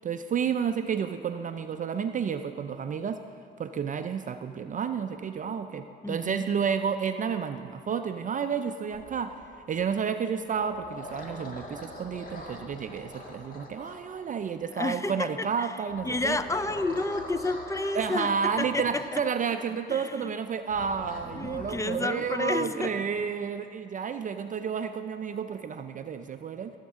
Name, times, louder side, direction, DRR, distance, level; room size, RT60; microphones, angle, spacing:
voice 1, 0.0-3.2 3.6-9.4 9.7-16.4 17.9-26.7, right 6 dB, 40° right, 8 dB, 0.4 m, -31 dB
voice 2, 6.0-6.5 11.3-11.5 14.7-15.7 16.0-18.3 18.6-19.2 19.9-20.3 21.3-23.0, left 2 dB, 15° left, 11 dB, 0.4 m, -31 dB
sound 1, 8.9-9.9 10.4-14.6 15.9-19.1 20.7-21.7, left 1 dB, 45° left, 1.7 m, -44 dB
16.5 x 7.3 x 3.6 m, 2.4 s
cardioid pair, 90°, 20 cm